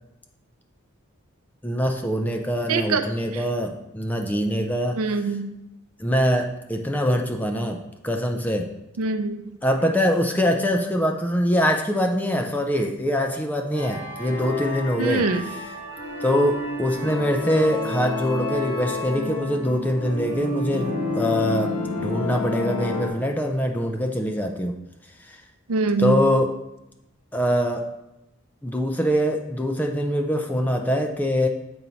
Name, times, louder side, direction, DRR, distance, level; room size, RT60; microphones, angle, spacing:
voice 1, 1.6-5.0 6.0-8.7 9.6-15.3 16.2-24.8 25.3-25.4 26.0-26.5 27.3-27.9 28.6-31.5, equal, 10° left, 3 dB, 0.4 m, -23 dB
voice 2, 2.7-3.4 4.9-5.5 9.0-9.4 15.0-15.5 25.7-26.3, right 3 dB, 85° right, 8 dB, 0.6 m, -24 dB
sound 1, 13.7-23.1, left 2 dB, 80° left, 2.4 m, -30 dB
7.1 x 4.4 x 4.0 m, 0.92 s
head